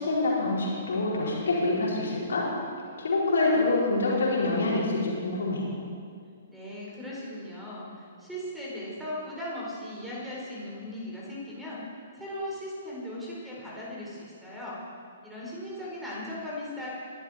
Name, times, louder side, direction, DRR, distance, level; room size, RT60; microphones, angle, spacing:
voice 1, 0.0-2.5 3.0-5.7, left 2 dB, 60° left, -5 dB, 4.6 m, -26 dB
voice 2, 6.5-11.8 12.1-14.8 15.2-16.9, left 1 dB, 5° right, -6 dB, 4.8 m, -38 dB
22.0 x 13.5 x 4.5 m, 2.2 s
figure-of-eight pair, 115°, 0 cm